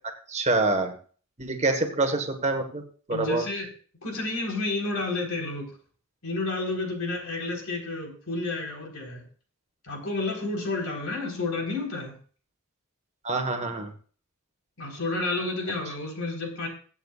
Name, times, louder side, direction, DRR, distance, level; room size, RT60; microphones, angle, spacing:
voice 1, 0.3-0.9 1.4-2.8 3.1-3.4 13.2-13.9, right 2 dB, 30° right, 5 dB, 1.5 m, -26 dB
voice 2, 3.1-3.7 4.0-5.7 6.2-9.2 9.8-12.1 14.8-16.7, left 2 dB, 70° left, 1 dB, 4.1 m, -30 dB
22.0 x 8.3 x 2.4 m, 0.42 s
head